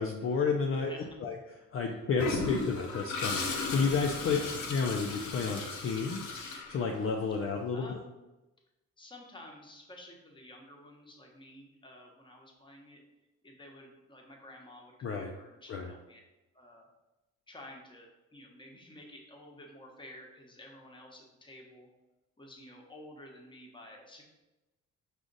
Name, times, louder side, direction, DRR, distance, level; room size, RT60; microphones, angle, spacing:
voice 1, 0.0-0.9 1.2-1.4 1.7-4.4 4.7-6.4 6.7-8.0 15.0-15.3 15.7-15.9, left 5 dB, 45° left, 2 dB, 0.5 m, -31 dB
voice 2, 0.7-1.1 1.7-2.0 4.2-4.6 7.7-8.1 9.0-13.0 13.4-16.2 16.5-16.9 17.5-21.9 22.4-24.3, left 1 dB, 15° left, 0 dB, 0.9 m, -51 dB
Toilet flush, 2.2-7.2, left 3 dB, 75° left, 0.8 m, -36 dB
4.9 x 2.5 x 3.9 m, 1.0 s
cardioid pair, 90°, 30 cm